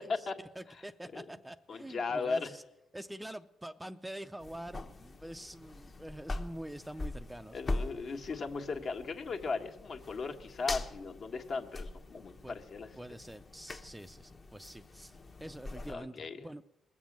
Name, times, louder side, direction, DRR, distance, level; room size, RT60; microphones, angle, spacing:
voice 1, 0.6-2.6 2.9-7.6 12.4-12.6 13.0-16.6, right 1 dB, 5° right, 10 dB, 0.5 m, -46 dB
voice 2, 1.7-2.5 7.5-12.9 15.9-16.4, left 4 dB, 55° left, 4 dB, 1.5 m, -37 dB
sound 1, 4.4-15.9, left 2 dB, 35° left, 1.1 m, -42 dB
20.0 x 7.3 x 7.4 m, 0.90 s
cardioid pair, 90°, 0 cm